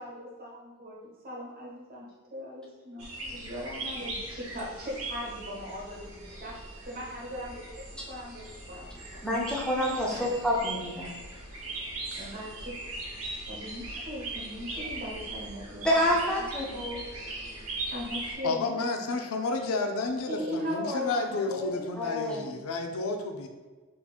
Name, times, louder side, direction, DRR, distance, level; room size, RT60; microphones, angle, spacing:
voice 1, 0.0-2.0 2.3-6.6 6.8-9.5 10.1-10.3 12.2-12.8 13.5-15.9 16.4-16.5 17.9-18.6 20.3-21.9, left 1 dB, 45° right, -5 dB, 1.0 m, -38 dB
sound 1, 3.0-18.4, right 2 dB, 70° right, 0.9 m, -40 dB
voice 2, 9.2-11.1 15.8-17.0 22.0-22.5, equal, 5° left, -5 dB, 0.5 m, -28 dB
voice 3, 18.4-23.5, left 3 dB, 70° left, 5 dB, 0.4 m, -31 dB
4.2 x 2.8 x 2.3 m, 1.3 s
head